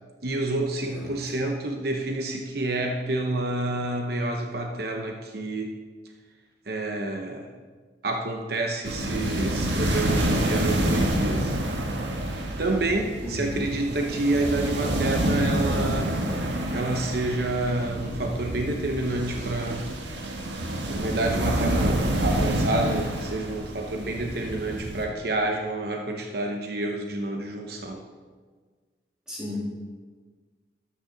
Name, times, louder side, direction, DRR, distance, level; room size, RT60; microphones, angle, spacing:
voice 1, 0.2-5.8 6.7-7.5 8.0-11.6 12.6-16.3 16.7-19.9 20.9-28.0, right 2 dB, 60° right, 2 dB, 0.9 m, -28 dB
sound 1, 8.8-25.0, right 1 dB, 85° right, 1.5 m, -28 dB
voice 2, 13.2-13.7 29.3-29.6, left 1 dB, 5° right, -7 dB, 3.0 m, -34 dB
13.0 x 8.8 x 3.9 m, 1.5 s
head